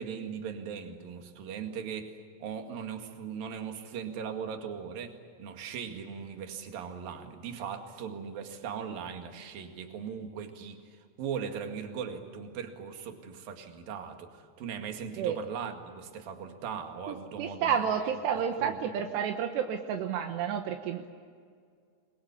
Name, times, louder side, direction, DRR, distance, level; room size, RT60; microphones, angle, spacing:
voice 1, 0.0-17.9 18.3-18.9, right 7 dB, 60° right, 5 dB, 3.6 m, -39 dB
voice 2, 17.1-21.1, right 8 dB, 80° right, 5 dB, 3.3 m, -30 dB
27.5 x 22.0 x 8.4 m, 2.1 s
omnidirectional pair, 4.9 m